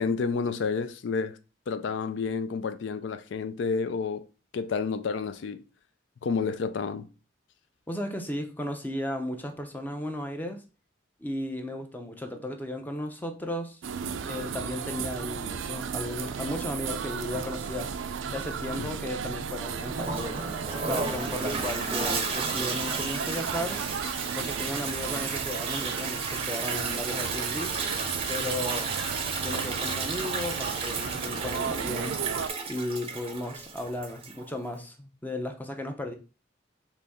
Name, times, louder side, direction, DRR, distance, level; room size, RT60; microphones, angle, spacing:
voice 1, 0.0-1.4 1.7-4.3 4.5-5.6 6.2-7.1 18.8-19.0, left 5 dB, 70° left, 0.4 m, -30 dB
voice 2, 7.9-10.6 11.2-13.8 14.2-20.4 20.8-23.8 24.3-27.8 28.3-28.9 29.4-32.2 32.7-36.1, left 1 dB, 10° left, 0.6 m, -35 dB
sound 1, 13.8-32.5, right 6 dB, 80° right, 0.4 m, -34 dB
Toilet flush, 19.8-34.5, right 4 dB, 30° right, 0.6 m, -33 dB
4.1 x 3.0 x 3.5 m
head